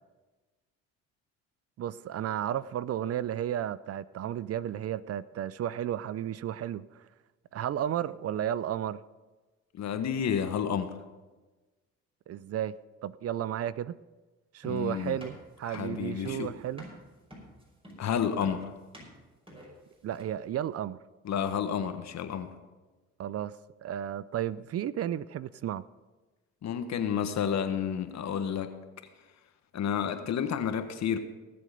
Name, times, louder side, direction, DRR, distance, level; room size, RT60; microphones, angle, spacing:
voice 1, 1.8-7.0 7.5-9.0 12.3-12.8 13.0-14.0 14.5-16.8 20.0-21.0 23.2-25.8, right 11 dB, 50° right, 0.5 m, -33 dB
voice 2, 9.7-10.9 14.6-15.2 15.6-16.5 18.0-18.7 21.2-22.5 26.6-28.7 29.7-31.2, left 8 dB, 60° left, 1.5 m, -30 dB
sound 1, 14.6-20.5, equal, 15° right, 5.3 m, -48 dB
18.5 x 7.7 x 5.2 m
supercardioid pair, 70°, 32 cm